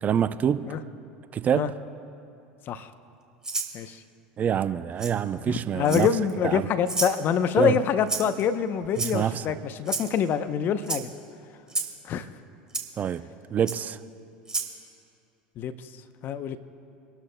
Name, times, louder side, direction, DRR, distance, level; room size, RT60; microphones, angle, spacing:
voice 1, 0.0-0.7 1.3-1.7 4.4-6.1 6.4-6.7 7.6-7.8 9.0-9.5 13.0-13.2 13.5-14.0, right 8 dB, 35° right, 13 dB, 0.5 m, -26 dB
Rattle (instrument), 3.4-3.7 5.0-5.1 5.8-6.3 6.9-7.2 8.1-8.4 8.9-9.4 9.9-10.1 10.8-11.0 11.7-11.9 12.7-12.8 13.7-13.8 14.4-14.7, right 3 dB, 15° right, 1.8 m, -30 dB
voice 2, 5.5-11.1 12.0-12.3 15.6-15.7 16.2-16.6, left 7 dB, 45° left, 12 dB, 0.7 m, -25 dB
27.5 x 12.5 x 2.2 m, 2.6 s
hypercardioid pair, 85°, 5 cm